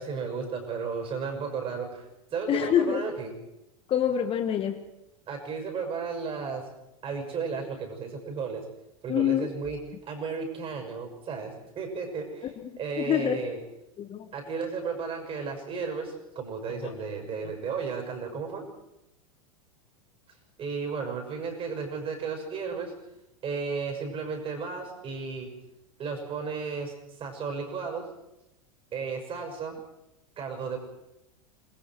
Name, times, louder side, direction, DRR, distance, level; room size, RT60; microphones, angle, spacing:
voice 1, 0.0-2.1 2.3-3.3 5.3-6.7 7.0-8.6 9.0-13.6 14.3-18.6 20.6-22.9 23.4-25.5 26.0-28.1 28.9-29.8 30.4-30.8, right 5 dB, 30° right, 3 dB, 6.2 m, -34 dB
voice 2, 2.5-3.0 3.9-4.9 9.1-9.5 12.6-13.4 14.0-14.3 16.8-16.9, left 10 dB, 30° left, 7 dB, 1.5 m, -26 dB
27.5 x 20.0 x 4.7 m, 0.88 s
figure-of-eight pair, 85°, 18 cm